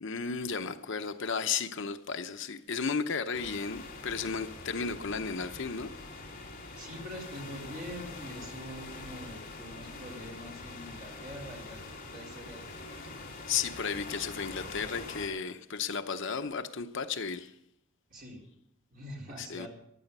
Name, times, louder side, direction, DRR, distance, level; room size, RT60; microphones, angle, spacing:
voice 1, 0.0-5.9 13.5-17.5 19.4-19.7, left 5 dB, 60° left, 0.8 m, -34 dB
sound 1, 3.3-15.3, left 3 dB, 40° left, 2.8 m, -44 dB
voice 2, 6.7-11.8 12.1-12.6 18.1-18.4 18.9-19.7, equal, 40° right, 4.0 m, -44 dB
15.0 x 11.5 x 5.4 m
head